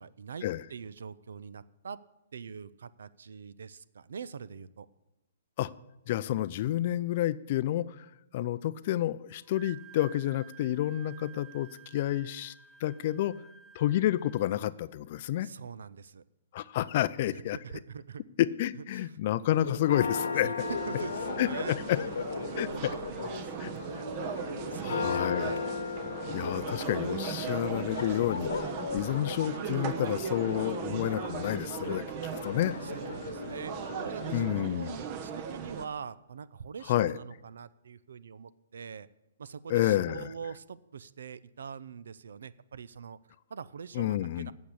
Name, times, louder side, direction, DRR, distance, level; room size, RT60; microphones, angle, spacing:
voice 1, 0.0-2.0 2.3-4.9 15.4-16.2 17.3-18.2 18.8-19.2 20.4-22.1 22.5-24.1 24.7-25.6 32.8-39.1 39.4-43.2 43.5-44.5, right 6 dB, 75° right, 17 dB, 0.5 m, -44 dB
voice 2, 6.1-8.1 8.3-12.5 12.8-13.3 13.8-15.5 16.5-17.6 18.4-20.5 21.4-22.0 22.6-23.0 23.6-23.7 24.8-25.6 26.3-28.5 28.9-32.0 32.4-32.8 34.3-35.0 36.9-37.2 39.7-40.3 43.9-44.5, left 13 dB, 50° left, 17 dB, 0.4 m, -29 dB
Wind instrument woodwind instrument, 9.3-14.7, right 8 dB, ahead, 1.0 m, -53 dB
Church bell, 19.5-34.5, left 5 dB, 80° left, 1.1 m, -37 dB
sound 1, 20.6-35.9, right 7 dB, 40° right, 0.9 m, -38 dB
8.5 x 7.0 x 8.2 m, 0.95 s
hypercardioid pair, 135°, 0 cm